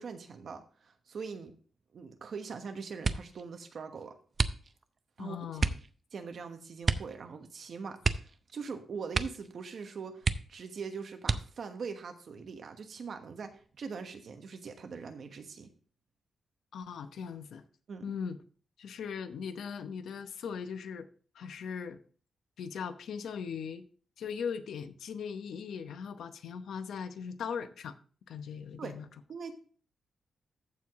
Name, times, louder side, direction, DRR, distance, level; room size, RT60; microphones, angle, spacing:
voice 1, 0.0-1.5 1.9-4.2 5.2-5.6 6.1-15.7 17.9-18.1 28.8-29.0 29.3-29.6, right 5 dB, 55° right, 6 dB, 1.2 m, -42 dB
sound 1, 3.0-3.4 4.3-5.0 5.6-5.9 6.8-7.2 7.4-7.5 8.0-8.7 9.1-9.5 9.8-9.9 10.2-10.7 11.2-11.8 12.5-13.1 13.5-13.9, right 4 dB, 35° right, 0.5 m, -31 dB
voice 2, 5.2-5.8 16.7-17.6 18.0-18.4 18.8-21.1 21.3-22.0 22.6-23.8 24.2-27.9 28.3-29.1, left 6 dB, 90° left, 9 dB, 0.8 m, -39 dB
14.0 x 4.8 x 3.6 m, 0.42 s
wide cardioid pair, 155°, 0 cm